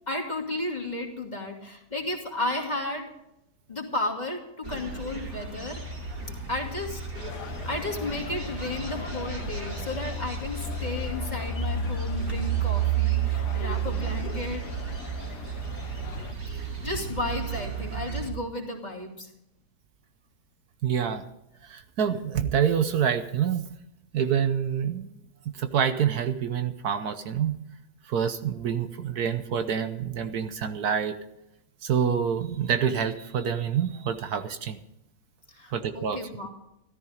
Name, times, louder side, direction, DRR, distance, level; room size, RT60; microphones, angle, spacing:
voice 1, 0.1-3.1 3.7-5.8 6.5-7.0 7.4-14.7 16.5-19.3 35.5-36.5, left 2 dB, 25° left, 0 dB, 2.7 m, -33 dB
sound 1, 4.6-18.3, right 6 dB, 45° right, 2.9 m, -32 dB
sound 2, 7.1-16.3, left 7 dB, 80° left, 1.5 m, -42 dB
voice 2, 20.8-21.2 21.6-23.6 24.1-25.1 25.5-27.6 28.1-31.1 31.8-34.8 35.7-36.2, right 8 dB, 70° right, 9 dB, 1.4 m, -27 dB
14.0 x 13.5 x 5.1 m, 0.83 s
omnidirectional pair, 1.7 m